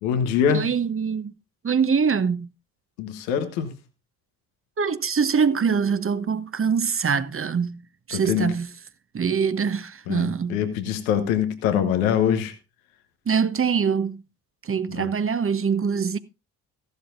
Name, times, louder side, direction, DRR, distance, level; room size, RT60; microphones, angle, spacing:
voice 1, 0.0-0.7 3.0-3.7 8.3-8.5 10.1-12.5 14.9-15.1, left 8 dB, 85° left, 1.3 m, -23 dB
voice 2, 0.5-1.4 1.6-2.5 4.8-7.8 8.1-8.7 9.1-10.6 13.3-14.2 14.6-16.2, right 6 dB, 35° right, 1.0 m, -23 dB
15.0 x 12.0 x 2.6 m
hypercardioid pair, 45°, 40 cm